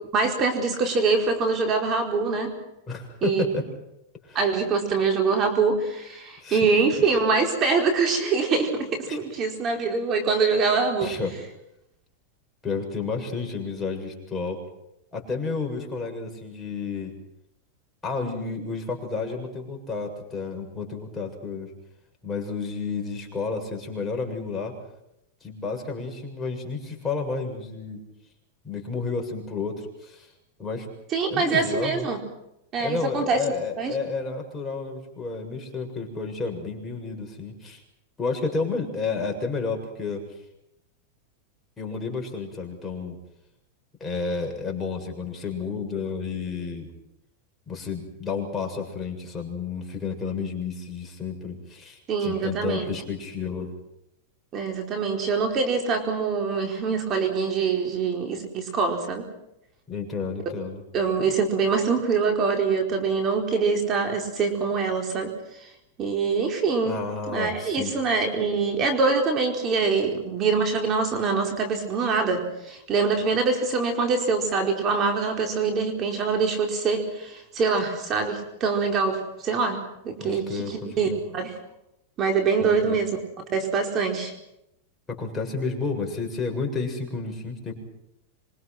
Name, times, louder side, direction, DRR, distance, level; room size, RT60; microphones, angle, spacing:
voice 1, 0.1-2.5 3.2-3.4 4.3-11.1 31.1-32.2 32.7-33.4 33.8-33.9 52.1-52.8 54.5-59.3 60.9-65.7 66.0-67.0 67.3-81.5 82.2-83.2 83.5-84.3, right 4 dB, 30° right, 4 dB, 4.6 m, -24 dB
voice 2, 2.9-3.7 4.2-4.4 6.4-6.7 9.1-9.2 11.0-11.4 12.6-14.6 15.1-17.1 18.0-21.7 22.2-24.7 25.4-28.0 28.6-30.3 30.6-30.9 31.3-32.1 32.8-37.8 38.2-40.2 41.8-43.1 44.0-46.9 47.7-53.7 59.9-60.8 66.8-67.9 80.2-81.2 82.6-83.0 85.1-87.7, left 4 dB, 15° left, 1 dB, 7.2 m, -31 dB
27.0 x 24.5 x 6.1 m, 0.82 s
supercardioid pair, 140°, 0 cm